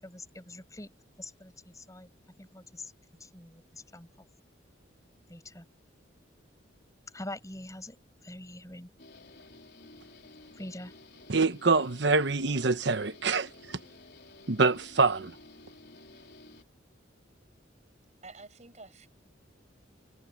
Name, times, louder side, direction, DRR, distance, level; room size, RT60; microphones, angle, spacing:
voice 1, 0.0-0.9 1.2-2.1 2.4-2.9 3.2-4.1 5.3-5.6 7.1-8.0 8.2-8.9 10.6-10.9, left 1 dB, 15° left, 6.7 m, -44 dB
Guitar, 9.0-16.6, left 2 dB, 60° left, 4.3 m, -53 dB
voice 2, 11.3-13.8 14.5-15.3, right 4 dB, 60° right, 1.1 m, -25 dB
voice 3, 18.2-19.1, right 3 dB, 35° right, 5.4 m, -49 dB
head